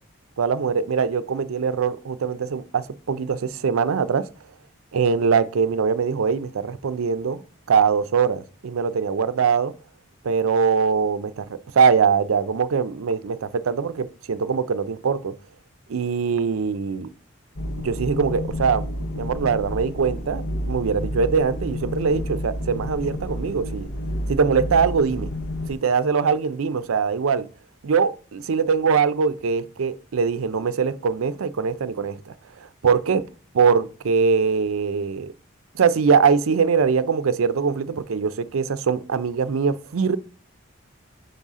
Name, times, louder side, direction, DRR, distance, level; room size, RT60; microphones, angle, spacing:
voice 1, 0.4-4.3 4.9-7.4 7.7-9.7 10.2-11.5 11.7-15.3 15.9-17.1 17.8-18.9 19.2-23.9 24.3-25.3 25.7-27.5 27.8-32.3 32.8-33.2 33.5-35.3 35.7-40.2, right 6 dB, 85° right, 0.5 m, -22 dB
sound 1, 17.6-25.8, left 1 dB, 60° left, 0.7 m, -30 dB
5.5 x 5.4 x 3.6 m
head